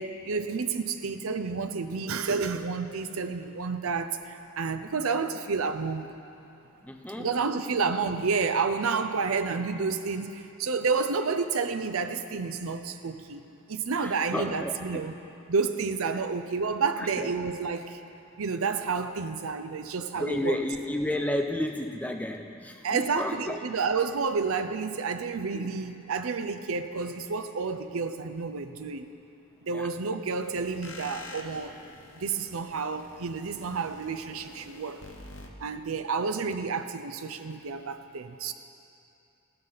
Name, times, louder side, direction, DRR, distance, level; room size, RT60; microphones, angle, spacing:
voice 1, 0.0-6.1 7.2-13.4 13.7-15.1 15.5-18.0 18.4-20.6 22.8-29.1 29.6-31.8 32.1-35.0 35.6-38.5, right 4 dB, 80° right, 9 dB, 0.6 m, -30 dB
voice 2, 6.8-7.3 14.0-15.1 16.1-16.2 17.0-17.3 20.2-23.6 25.5-25.7 29.7-29.9, left 1 dB, 5° left, 4 dB, 0.6 m, -32 dB
sound 1, 30.4-35.5, left 2 dB, 60° left, 1.0 m, -47 dB
15.5 x 12.0 x 4.0 m, 2.8 s
head